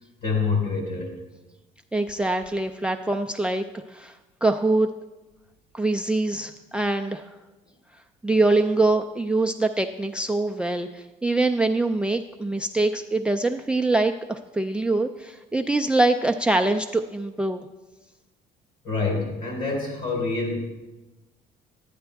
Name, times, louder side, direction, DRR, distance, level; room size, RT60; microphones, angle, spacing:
voice 1, 0.2-1.1 8.3-8.4 18.8-20.6, left 4 dB, 50° left, 0 dB, 4.0 m, -26 dB
voice 2, 1.9-3.6 3.9-4.1 4.4-4.9 5.7-7.2 8.2-17.6, right 2 dB, 5° right, 8 dB, 0.3 m, -24 dB
11.0 x 9.8 x 3.4 m, 1.1 s
cardioid pair, 110°, 17 cm